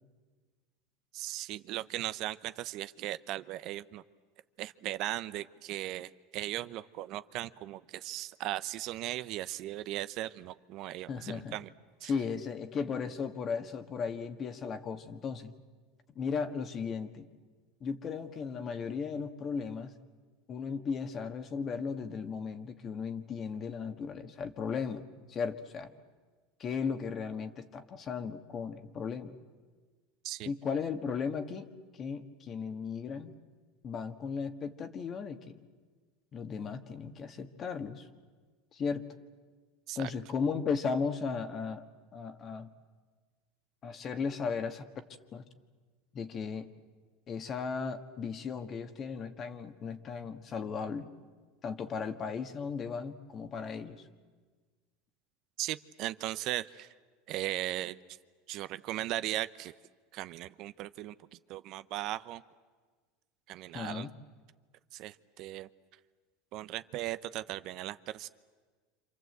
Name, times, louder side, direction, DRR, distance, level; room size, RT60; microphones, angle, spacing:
voice 1, 1.1-4.0 4.6-11.7 12.0-12.1 30.2-30.5 39.9-40.1 55.6-56.9 57.3-58.0 58.5-59.7 60.1-61.1 61.5-62.4 63.5-64.1 64.9-65.7 66.5-68.3, right 15 dB, 50° right, 14 dB, 0.7 m, -37 dB
voice 2, 11.1-11.6 12.0-15.5 16.1-17.3 17.8-19.9 20.5-25.0 25.3-25.9 26.6-29.4 30.4-31.7 32.0-33.3 33.8-35.6 36.3-38.0 38.7-39.0 39.9-41.8 42.1-42.7 43.8-44.9 45.3-45.4 46.1-46.7 47.3-51.1 51.6-54.0 63.7-64.1, left 5 dB, 30° left, 8 dB, 1.7 m, -36 dB
27.5 x 27.0 x 8.0 m, 1.4 s
supercardioid pair, 125°, 0 cm